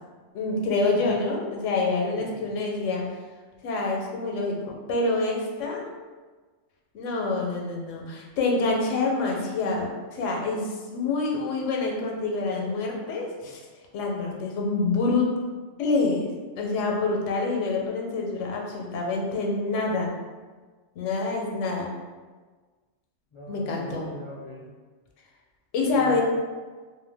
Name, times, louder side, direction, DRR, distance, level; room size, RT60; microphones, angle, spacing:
voice 1, 0.3-3.0 3.6-4.6 4.9-5.8 6.9-13.6 13.9-15.3 15.8-16.3 16.6-20.1 21.0-21.9 23.5-24.1 25.7-26.2, left 3 dB, 90° left, -1 dB, 0.9 m, -26 dB
voice 2, 2.1-2.5 23.3-24.7 25.9-26.2, equal, 45° left, -8 dB, 0.4 m, -41 dB
2.4 x 2.1 x 3.2 m, 1.4 s
omnidirectional pair, 1.2 m